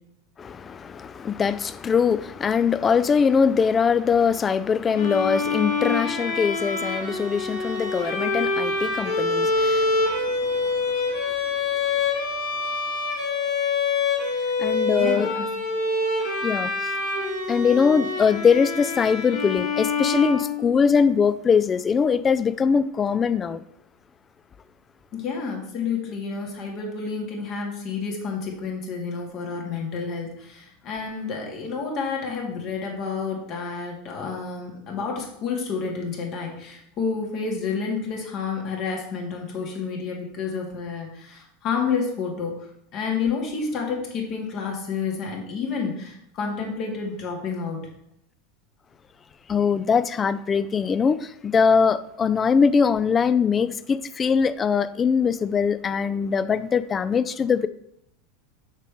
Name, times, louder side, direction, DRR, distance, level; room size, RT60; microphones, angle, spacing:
voice 1, 0.4-10.7 14.6-15.3 16.4-16.9 17.5-23.6 49.5-57.7, left 6 dB, 25° left, 0.4 m, -22 dB
Bowed string instrument, 4.9-21.0, left 3 dB, 70° left, 2.4 m, -26 dB
voice 2, 14.9-15.5 25.1-42.7 42.9-47.9, left 5 dB, 45° left, 1.9 m, -30 dB
6.5 x 5.1 x 3.4 m
hypercardioid pair, 85°, 0 cm